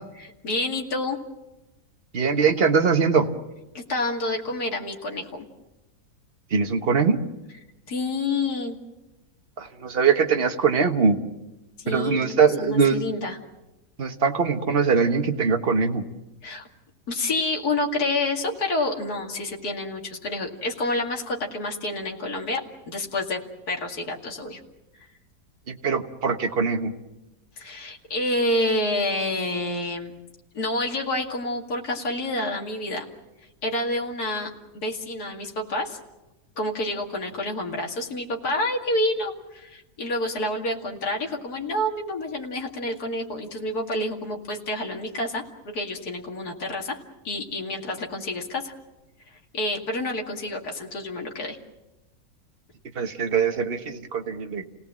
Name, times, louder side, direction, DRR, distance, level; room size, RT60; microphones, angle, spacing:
voice 1, 0.2-1.2 3.7-5.4 7.9-8.8 11.8-13.4 16.4-16.7 17.1-22.6 22.9-23.4 23.7-24.6 27.6-30.1 30.5-33.1 33.6-36.0 36.6-47.0 47.2-48.7 49.5-51.6, left 2 dB, 70° left, 1 dB, 2.8 m, -28 dB
voice 2, 2.1-3.3 6.5-7.2 9.6-11.2 11.9-13.0 14.0-16.0 25.7-26.9 52.9-54.6, right 5 dB, 35° right, 5 dB, 1.5 m, -22 dB
29.5 x 18.0 x 7.6 m, 1.0 s
omnidirectional pair, 1.7 m